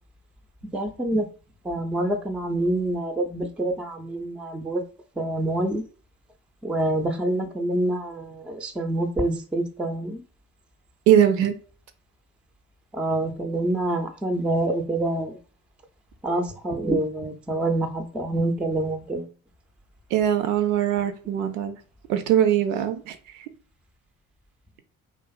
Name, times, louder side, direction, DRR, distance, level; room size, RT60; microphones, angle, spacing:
voice 1, 0.7-1.3 1.6-4.8 5.2-5.8 6.6-10.2 12.9-15.4 16.2-19.3, right 1 dB, 5° right, 0.3 m, -26 dB
voice 2, 11.1-11.5 20.1-21.8 22.1-23.4, right 10 dB, 70° right, 0.5 m, -21 dB
2.4 x 2.4 x 2.3 m
hypercardioid pair, 50°, 40 cm